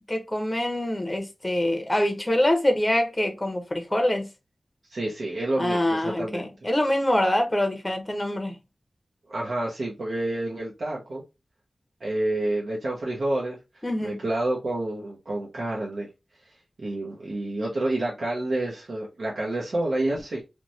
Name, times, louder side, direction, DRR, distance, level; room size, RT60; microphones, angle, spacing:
voice 1, 0.1-4.3 5.6-8.6 13.8-14.2, left 1 dB, 20° left, 0.6 m, -25 dB
voice 2, 4.9-6.5 9.3-11.2 12.0-13.6 14.0-16.1 16.8-20.4, right 1 dB, 80° right, 0.7 m, -28 dB
3.0 x 2.1 x 2.5 m
wide cardioid pair, 95°, 0 cm